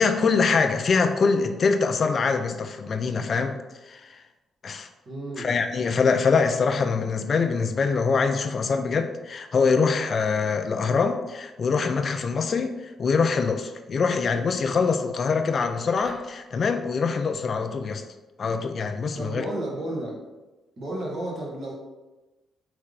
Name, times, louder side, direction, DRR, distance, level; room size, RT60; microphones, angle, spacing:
voice 1, 0.0-3.6 3.9-4.2 4.6-4.9 5.4-18.0 18.4-19.4, left 5 dB, 50° left, 7 dB, 0.3 m, -24 dB
voice 2, 5.0-5.5 19.2-20.2 20.8-21.7, right 1 dB, 55° right, -3 dB, 1.4 m, -32 dB
sound 1, 15.6-16.4, left 1 dB, ahead, 0.6 m, -42 dB
3.9 x 3.3 x 3.3 m, 1.1 s
cardioid pair, 90°, 0 cm